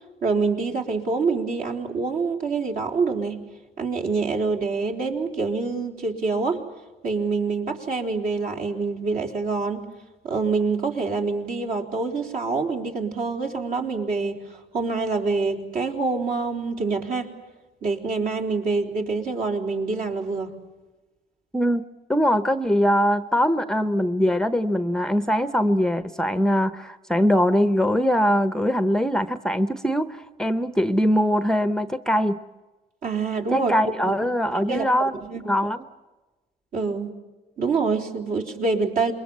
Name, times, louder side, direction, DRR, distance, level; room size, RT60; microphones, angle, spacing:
voice 1, 0.2-3.4 3.8-6.6 7.0-9.9 10.2-17.3 17.8-20.5 33.0-34.2 34.7-35.4 36.7-37.1 37.6-39.1, right 4 dB, 55° right, 3 dB, 4.1 m, -26 dB
voice 2, 22.1-32.4 33.5-35.8, equal, 5° left, 11 dB, 0.8 m, -22 dB
27.5 x 22.5 x 7.4 m, 1.1 s
cardioid pair, 110°, 17 cm